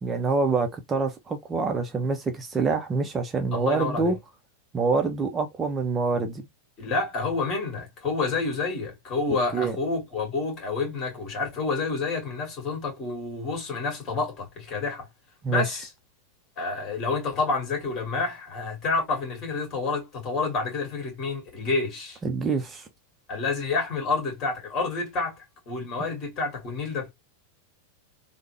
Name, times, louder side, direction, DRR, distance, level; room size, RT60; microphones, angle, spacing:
voice 1, 0.0-4.2 4.7-6.5 9.5-9.8 15.4-15.7 22.2-22.9, right 4 dB, 20° right, 0.5 m, -26 dB
voice 2, 3.5-4.2 6.8-15.1 15.5-15.9 16.6-22.2 23.3-27.1, left 3 dB, 30° left, 1.8 m, -29 dB
3.3 x 2.1 x 3.1 m
figure-of-eight pair, 90°, 0 cm